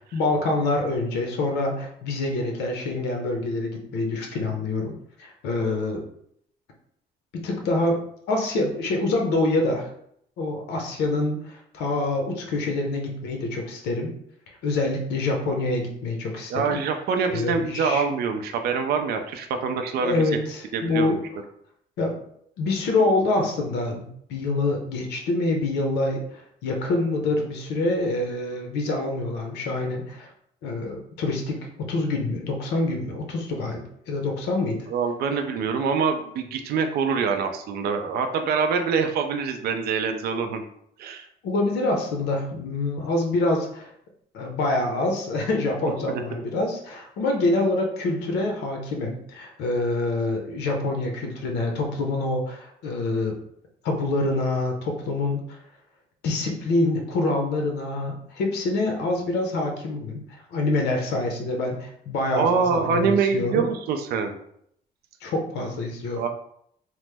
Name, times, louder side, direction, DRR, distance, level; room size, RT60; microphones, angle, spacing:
voice 1, 0.1-6.0 7.4-8.0 8.3-9.9 10.4-14.1 14.6-16.8 17.3-18.0 20.0-21.2 22.0-22.2 22.6-30.3 30.6-34.8 41.4-43.9 44.3-53.4 53.8-55.6 56.2-63.7 65.2-66.2, left 2 dB, 90° left, 2 dB, 0.7 m, -26 dB
voice 2, 16.5-20.3 20.7-21.2 34.9-40.6 41.0-41.2 62.3-64.4 66.2-66.3, right 5 dB, 70° right, 6 dB, 0.4 m, -25 dB
2.9 x 2.0 x 3.3 m, 0.69 s
cardioid pair, 130°, 17 cm